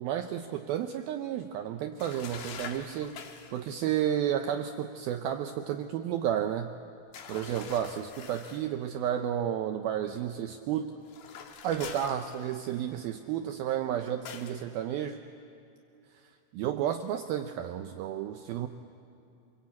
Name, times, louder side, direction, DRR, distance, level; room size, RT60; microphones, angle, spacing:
voice 1, 0.0-6.7 7.3-10.9 11.6-15.2 16.5-18.7, right 10 dB, 85° right, 7 dB, 2.1 m, -32 dB
sound 1, 2.0-3.6 7.1-8.7 11.0-12.8 14.3-14.6, left 7 dB, 65° left, 3.0 m, -44 dB
27.0 x 23.0 x 8.5 m, 2.6 s
omnidirectional pair, 5.2 m